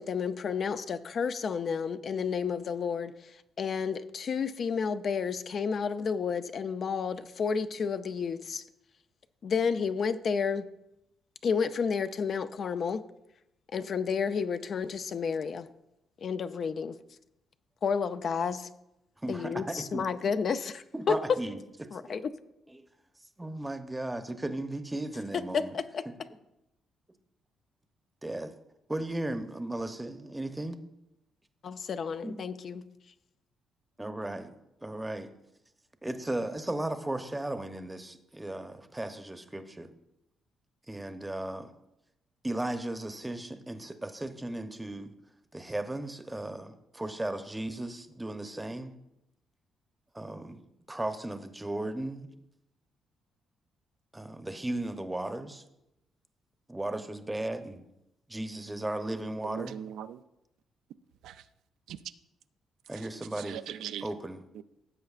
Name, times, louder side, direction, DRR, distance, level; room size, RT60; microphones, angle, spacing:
voice 1, 0.0-8.6 9.4-10.7 11.4-13.1 13.7-15.7 16.2-17.0 17.8-18.7 19.3-21.2 21.9-22.3 25.3-26.0 31.6-32.9, left 6 dB, 55° left, 0.5 m, -31 dB
voice 2, 19.2-20.1 20.9-22.2 22.7-22.9 23.4-25.7 26.1-26.2 28.2-28.5 28.9-30.8 32.2-32.4 34.0-34.5 34.8-35.3 36.0-39.9 40.9-41.7 42.4-45.1 45.5-48.9 50.1-50.6 50.9-52.3 54.1-55.6 56.7-57.8 58.3-59.8 62.9-63.6 64.0-64.4, right 1 dB, 10° right, 0.8 m, -36 dB
voice 3, 59.4-60.2 61.2-61.5 61.9-62.0 62.9-64.1 64.5-64.6, right 10 dB, 85° right, 0.4 m, -41 dB
16.0 x 7.6 x 2.4 m
cardioid pair, 90°, 0 cm